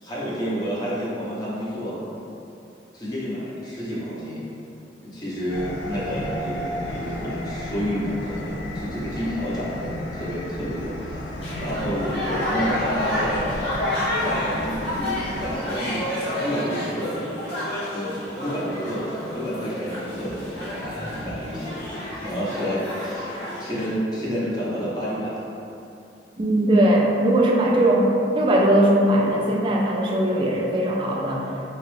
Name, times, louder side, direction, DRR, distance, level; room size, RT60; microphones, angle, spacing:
voice 1, 0.0-2.0 2.9-4.4 5.0-11.3 11.5-13.5 14.2-17.3 17.9-21.8 22.2-25.4, equal, 25° left, -8 dB, 0.7 m, -29 dB
sound 1, 5.5-15.6, left 1 dB, 85° left, 0.4 m, -33 dB
sound 2, 11.4-23.9, left 1 dB, 70° left, 1.1 m, -30 dB
voice 2, 26.4-31.5, right 1 dB, 30° right, -1 dB, 0.3 m, -20 dB
2.9 x 2.4 x 3.1 m, 2.7 s
head